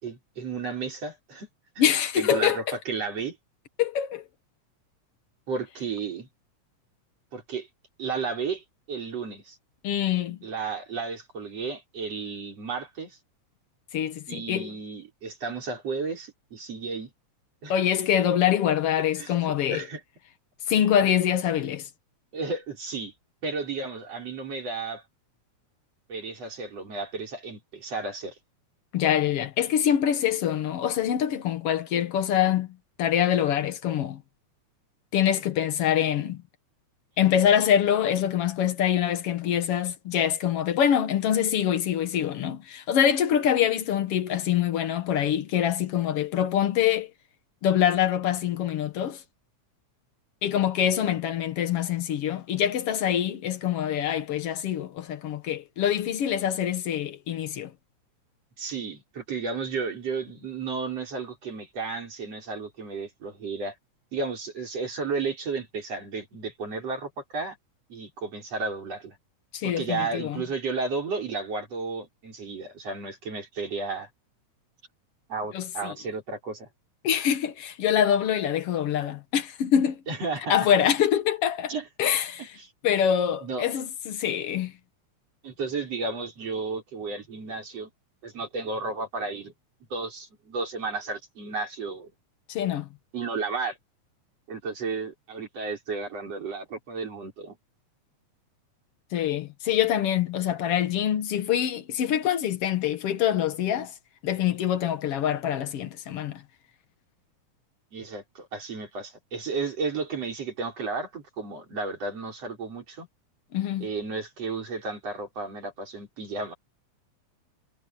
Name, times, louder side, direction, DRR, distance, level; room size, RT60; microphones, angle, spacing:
voice 1, 0.0-1.5 1.8-1.9 2.2-3.4 5.5-6.3 7.3-7.7 8.0-9.6 10.4-13.2 14.3-17.1 17.6-17.7 19.2-20.0 22.3-23.1 23.4-25.0 26.1-28.4 58.6-63.7 64.1-67.6 67.9-69.2 69.6-74.1 75.3-76.7 80.1-80.6 81.7-81.9 82.4-82.7 83.4-83.6 85.4-87.9 88.2-89.5 89.9-92.1 93.1-93.8 94.5-97.6 107.9-113.1 113.8-116.5, right 4 dB, 55° right, 6.6 m, -33 dB
voice 2, 1.8-2.8 3.8-4.2 9.8-10.4 13.9-14.7 17.7-19.8 20.7-21.9 28.9-34.2 35.1-36.4 37.2-47.1 47.6-49.2 50.4-57.7 69.5-70.4 75.5-75.9 77.0-80.0 80.5-81.7 82.0-82.5 82.8-84.7 92.5-92.9 99.1-103.9 104.2-106.4 113.5-113.9, left 9 dB, 60° left, 1.9 m, -25 dB
omnidirectional pair, 3.4 m